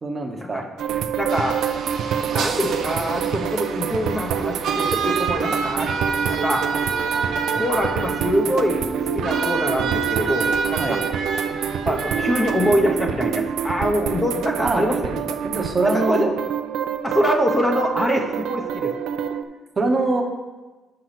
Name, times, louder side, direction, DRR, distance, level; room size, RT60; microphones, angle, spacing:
voice 1, 0.0-0.6 10.8-11.0 14.6-14.9 15.4-16.3 19.8-20.2, right 2 dB, 25° right, 2 dB, 0.9 m, -23 dB
sound 1, 0.8-19.4, right 7 dB, 80° right, 0.5 m, -26 dB
voice 2, 1.2-1.6 2.2-5.9 6.3-6.7 7.5-11.0 11.8-15.4 15.8-16.3 17.0-18.9, equal, 15° left, 2 dB, 0.6 m, -24 dB
sound 2, 1.3-12.7, right 5 dB, 65° right, 1.0 m, -28 dB
6.5 x 6.0 x 5.8 m, 1.2 s
cardioid pair, 175°, 0 cm